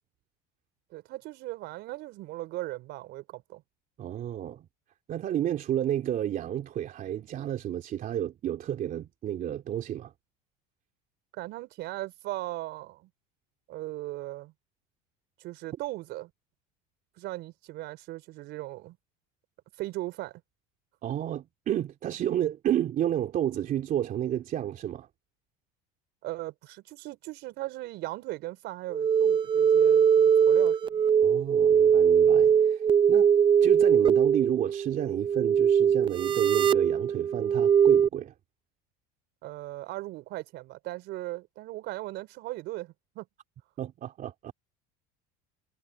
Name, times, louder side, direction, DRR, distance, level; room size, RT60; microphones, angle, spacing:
voice 1, 0.9-3.6 11.3-13.1 13.7-14.5 15.4-16.3 17.2-19.0 19.8-20.4 26.2-31.0 39.4-43.3, right 18 dB, 60° right, 4.5 m, -38 dB
voice 2, 4.0-4.7 5.1-10.1 21.0-25.1 31.2-32.8 33.1-33.3 33.6-38.3 43.8-44.5, right 11 dB, 45° right, 3.0 m, -31 dB
sound 1, 28.9-38.1, right 7 dB, 25° right, 0.4 m, -21 dB
supercardioid pair, 110°, 20 cm